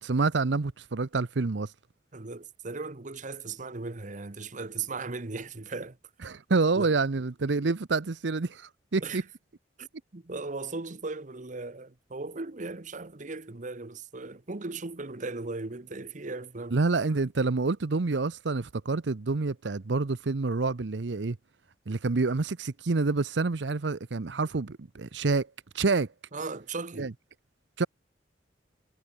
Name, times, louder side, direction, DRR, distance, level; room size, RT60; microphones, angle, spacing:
voice 1, 0.0-1.7 6.2-9.2 16.7-21.4 21.9-26.1 27.0-27.1 27.8-27.9, right 3 dB, 85° right, 0.8 m, -28 dB
voice 2, 2.1-6.0 6.8-6.9 9.0-9.2 9.8-9.9 10.1-16.8 26.3-27.1, right 3 dB, 45° right, 1.1 m, -37 dB
head